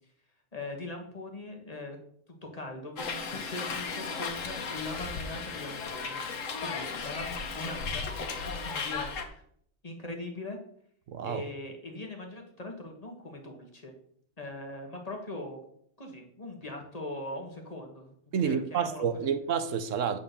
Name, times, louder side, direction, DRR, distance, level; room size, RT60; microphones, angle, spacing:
voice 1, 0.5-2.0 2.4-6.2 6.6-9.4 9.8-10.6 11.2-13.9 14.4-15.6 16.0-18.1 18.4-19.3, left 2 dB, 30° left, 1.5 m, -41 dB
Hiss, 3.0-9.3, left 5 dB, 85° left, 1.4 m, -35 dB
voice 2, 11.1-11.4 18.3-20.2, right 7 dB, 80° right, 1.1 m, -29 dB
8.2 x 4.7 x 6.7 m
omnidirectional pair, 1.3 m